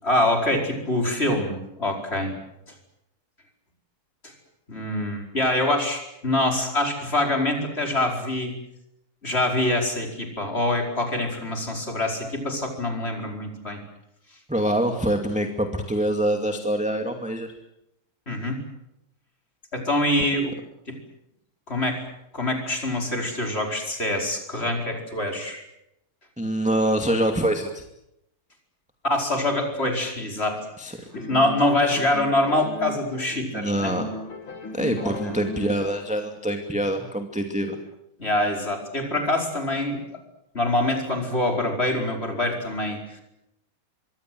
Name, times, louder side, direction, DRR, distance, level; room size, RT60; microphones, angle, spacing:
voice 1, 0.0-2.3 4.2-4.3 4.7-8.5 9.2-13.8 18.3-18.6 19.7-20.5 20.9-21.0 21.7-22.0 22.3-25.6 29.0-30.6 31.1-33.9 35.0-35.3 38.2-40.0 40.5-43.2, left 1 dB, 25° left, 3 dB, 5.2 m, -25 dB
voice 2, 14.5-17.5 26.4-27.8 30.8-31.0 31.9-32.0 33.5-34.1 34.7-37.8, right 1 dB, 5° right, 4 dB, 2.2 m, -25 dB
sound 1, 31.1-33.5 33.8-36.2, left 2 dB, 65° left, 3.3 m, -36 dB
26.0 x 23.5 x 7.8 m, 0.83 s
omnidirectional pair, 2.4 m